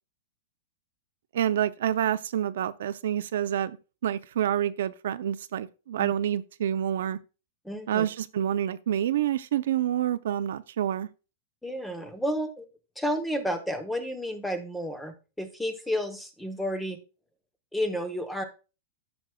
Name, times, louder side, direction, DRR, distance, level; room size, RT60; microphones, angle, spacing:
voice 1, 1.3-3.8 4.0-7.2 7.9-11.1, right 10 dB, 75° right, 0.5 m, -28 dB
voice 2, 7.6-8.1 11.6-12.7 13.0-17.0 17.7-18.4, equal, 5° left, 0.8 m, -31 dB
14.0 x 6.1 x 2.2 m
supercardioid pair, 170°, 0 cm